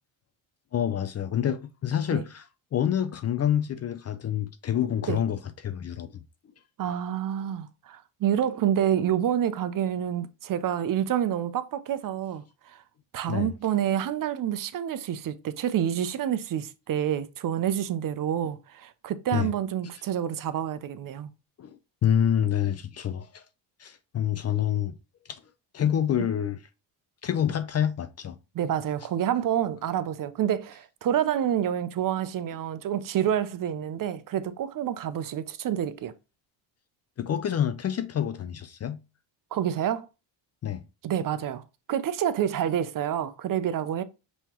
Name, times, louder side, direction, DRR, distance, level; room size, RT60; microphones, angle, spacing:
voice 1, 0.7-6.2 13.3-13.5 19.3-19.5 21.6-23.4 23.8-24.9 25.3-25.4 25.7-26.6 27.2-28.4 37.2-39.0 40.6-40.8, left 9 dB, 35° left, 0.4 m, -27 dB
voice 2, 6.8-12.8 13.1-21.3 26.2-26.3 28.5-36.1 39.5-40.1 41.0-41.6 41.9-44.0, right 10 dB, 45° right, 0.5 m, -28 dB
5.5 x 3.0 x 2.9 m
cardioid pair, 100°, 46 cm